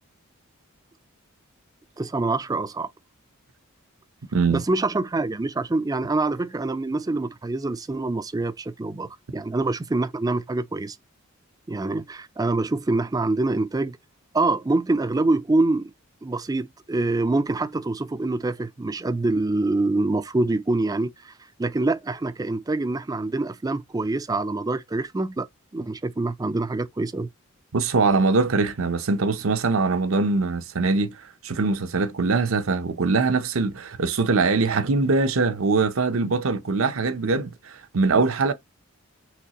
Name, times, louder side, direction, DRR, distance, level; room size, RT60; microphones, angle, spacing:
voice 1, 2.0-2.9 4.5-11.0 11.7-14.0 14.3-15.9 16.2-21.3 21.6-25.5 25.7-27.3, right 2 dB, 15° right, 0.3 m, -25 dB
voice 2, 4.3-4.6 27.7-38.5, right 4 dB, 70° right, 0.7 m, -22 dB
5.9 x 3.1 x 2.9 m
head